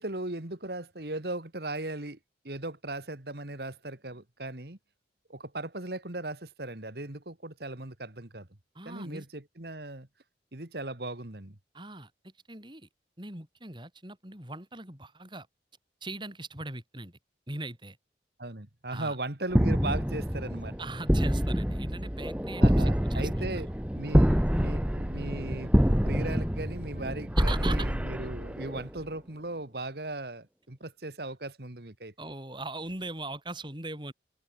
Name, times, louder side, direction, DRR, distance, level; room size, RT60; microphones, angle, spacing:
voice 1, 0.0-2.2 2.4-4.8 5.3-8.5 8.9-10.1 10.5-11.6 18.4-20.8 22.6-23.7 23.9-25.8 26.1-32.1, right 2 dB, 60° right, 2.3 m, -37 dB
voice 2, 8.7-9.3 11.7-12.9 13.2-15.5 16.0-17.2 17.5-18.0 18.9-19.2 20.8-23.7 27.4-27.9 32.2-34.1, right 2 dB, 25° right, 6.2 m, -40 dB
sound 1, 19.5-29.0, equal, 5° right, 1.0 m, -26 dB
head